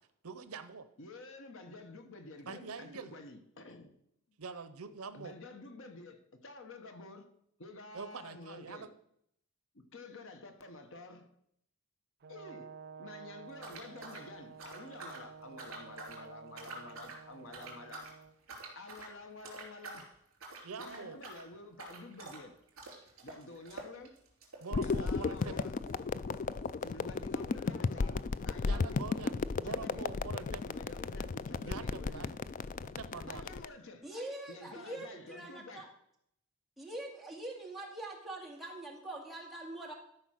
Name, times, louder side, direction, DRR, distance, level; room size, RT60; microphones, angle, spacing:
voice 1, 0.2-0.9 2.5-3.1 4.4-5.3 7.9-8.9 20.6-21.2 24.6-25.6 28.6-30.6 31.6-32.4 32.8-33.4, right 5 dB, 80° right, 12 dB, 0.8 m, -45 dB
voice 2, 1.0-3.9 5.1-7.3 7.6-8.9 9.7-11.3 12.3-18.1 18.7-20.1 20.8-22.5 23.2-24.2 24.7-25.8 26.8-29.0 29.6-32.4 33.3-34.1 34.5-35.9, left 2 dB, 65° left, 7 dB, 1.2 m, -50 dB
Brass instrument, 12.2-18.3, right 6 dB, 50° right, 0.5 m, -51 dB
sound 1, 13.6-15.3 15.6-16.2 16.5-17.2 17.5-18.1 18.5-19.1 19.4-20.1 20.3-26.0 26.3-26.4 26.6-26.7 27.4-27.5, right 3 dB, 65° right, 3.3 m, -48 dB
sound 2, 24.7-33.7, left 4 dB, 35° left, 0.4 m, -35 dB
voice 3, 34.0-35.9 36.8-39.9, right 2 dB, ahead, -4 dB, 2.2 m, -43 dB
13.0 x 4.9 x 6.4 m, 0.72 s
head